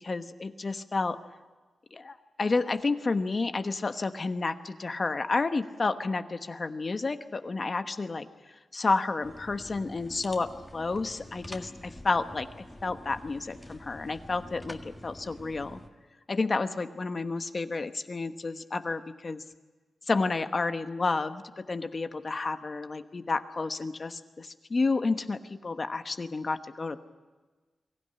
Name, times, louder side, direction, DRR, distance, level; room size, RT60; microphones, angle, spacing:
voice 1, 0.0-1.2 1.9-8.3 8.7-12.5 12.8-15.8 16.3-19.4 20.1-27.0, left 3 dB, 35° left, 9 dB, 1.1 m, -30 dB
sound 1, 9.2-15.9, left 1 dB, 10° left, 1.8 m, -47 dB
23.5 x 15.5 x 9.8 m, 1.3 s
wide cardioid pair, 125°, 0 cm